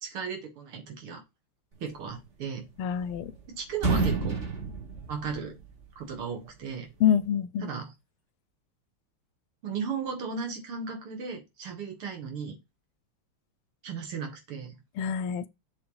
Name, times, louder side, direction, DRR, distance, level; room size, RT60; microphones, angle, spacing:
voice 1, 0.0-1.2 1.8-2.7 3.5-4.4 5.1-5.6 6.0-6.9 7.6-7.9 9.6-12.6 13.8-14.8, right 6 dB, 80° right, 2.6 m, -36 dB
sound 1, 2.6-3.4 3.7-5.9, right 4 dB, 35° right, 1.7 m, -29 dB
voice 2, 2.8-3.3 7.0-7.7 15.0-15.5, left 9 dB, 85° left, 1.6 m, -26 dB
7.0 x 3.3 x 4.9 m
omnidirectional pair, 2.4 m